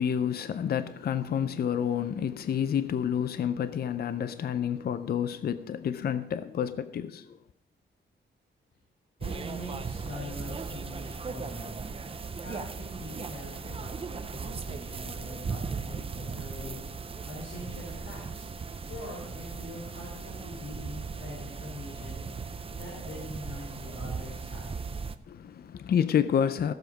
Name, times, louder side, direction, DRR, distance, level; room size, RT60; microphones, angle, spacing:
voice 1, 0.0-7.4 25.3-26.7, left 8 dB, 50° left, 0.5 m, -29 dB
voice 2, 9.2-11.7 12.4-18.4 18.9-24.7, left 1 dB, 70° left, 4.0 m, -43 dB
sound 1, 9.2-25.1, right 5 dB, 25° right, 0.5 m, -38 dB
16.0 x 7.2 x 5.0 m
wide cardioid pair, 175°, 21 cm